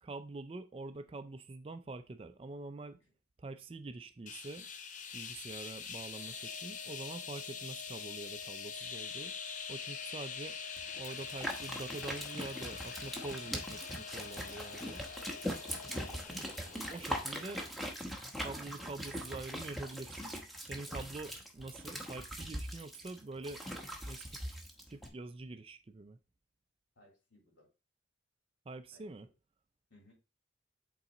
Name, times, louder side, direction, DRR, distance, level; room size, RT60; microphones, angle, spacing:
voice 1, 0.0-3.0 3.4-4.7 5.1-9.3 9.7-10.6 11.0-15.0 16.7-17.6 18.4-20.3 20.6-23.6 24.1-24.4 24.9-26.2 28.7-29.3, right 3 dB, 30° right, 0.3 m, -45 dB
sound 1, 4.3-17.6, left 6 dB, 40° left, 0.6 m, -45 dB
Organ, 6.1-16.8, left 5 dB, 20° left, 3.1 m, -51 dB
sound 2, 10.8-25.1, equal, ahead, 0.8 m, -41 dB
voice 2, 15.9-16.3 17.2-17.6 26.9-27.7 28.9-29.0 29.9-30.1, left 1 dB, 75° left, 3.5 m, -63 dB
8.3 x 4.0 x 2.9 m
head